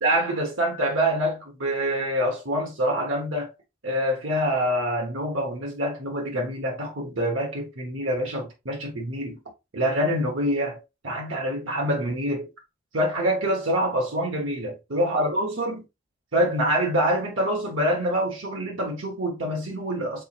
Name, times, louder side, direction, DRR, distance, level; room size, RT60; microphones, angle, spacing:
voice 1, 0.0-3.5 3.8-9.4 9.7-12.5 12.9-15.8 16.3-20.2, equal, 90° right, 1.2 m, -26 dB
4.2 x 3.7 x 2.5 m
head